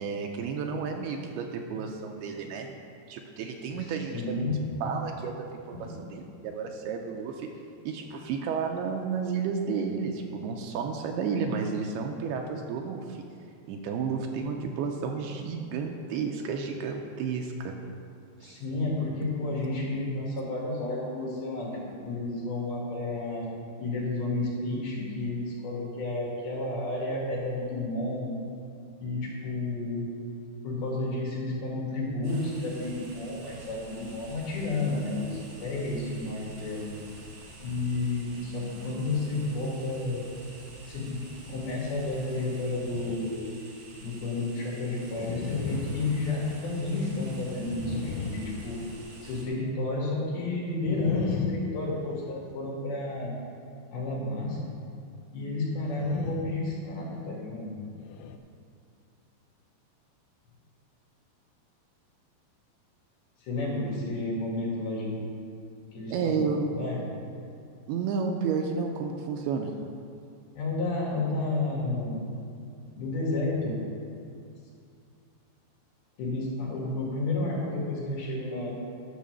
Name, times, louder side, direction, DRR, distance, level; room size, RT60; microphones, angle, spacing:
voice 1, 0.0-2.8 3.1-4.5 4.8-7.5 7.9-13.2 13.7-17.8 18.4-18.6 66.1-66.7 67.9-69.7, right 5 dB, 85° right, 3 dB, 2.4 m, -32 dB
voice 2, 4.1-4.6 5.8-5.9 18.4-23.5 23.8-28.4 29.0-30.1 30.6-36.9 37.6-40.3 40.8-41.2 41.5-43.4 44.0-48.8 49.2-53.4 53.9-54.8 55.3-57.8 63.4-65.3 65.9-67.1 70.5-72.3 73.0-73.8 76.2-78.7, left 2 dB, 65° left, -4 dB, 3.9 m, -31 dB
sound 1, 32.2-49.5, right 2 dB, 55° right, 2.3 m, -48 dB
sound 2, 42.8-43.6 44.0-44.1 45.1-46.9 47.6-49.3 50.8-52.5 55.8-56.7 57.1-57.3 58.0-58.4, left 5 dB, 80° left, 2.8 m, -37 dB
11.5 x 5.8 x 6.8 m, 2.4 s
omnidirectional pair, 5.1 m